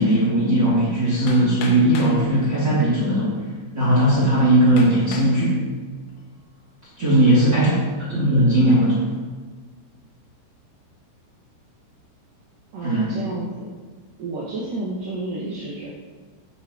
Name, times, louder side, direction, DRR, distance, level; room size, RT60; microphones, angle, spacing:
voice 1, 0.0-3.3 3.7-5.6 7.0-7.7 8.1-9.0 12.8-13.1, right 1 dB, 30° right, -8 dB, 2.2 m, -18 dB
Hammer, 1.3-2.2 3.1-3.2 3.8-3.9 4.8-5.4 6.0-6.4, left 3 dB, 75° left, 3.7 m, -37 dB
voice 2, 7.0-7.8 12.7-13.6 14.2-15.9, right 2 dB, 55° right, -6 dB, 2.6 m, -31 dB
14.0 x 8.6 x 3.1 m, 1.4 s
omnidirectional pair, 5.9 m